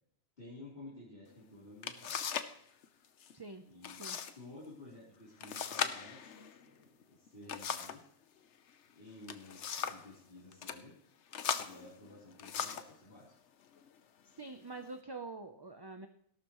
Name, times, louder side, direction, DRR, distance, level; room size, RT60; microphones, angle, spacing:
voice 1, 0.4-2.3 3.7-4.0 4.3-8.1 8.9-11.0 11.3-13.3, left 2 dB, 50° left, -7 dB, 3.9 m, -53 dB
sound 1, 1.3-1.4 1.8-2.6 2.8-3.3 3.8-4.3 4.6-4.7 5.4-8.1 9.0-10.1 10.5-10.8 11.3-13.0 13.7-13.9 14.4-14.9, left 7 dB, 80° left, 1.2 m, -39 dB
voice 2, 3.3-3.6 4.0-4.2 14.4-16.1, right 3 dB, 25° right, 7 dB, 0.7 m, -45 dB
17.5 x 12.0 x 3.1 m, 0.69 s
omnidirectional pair, 1.2 m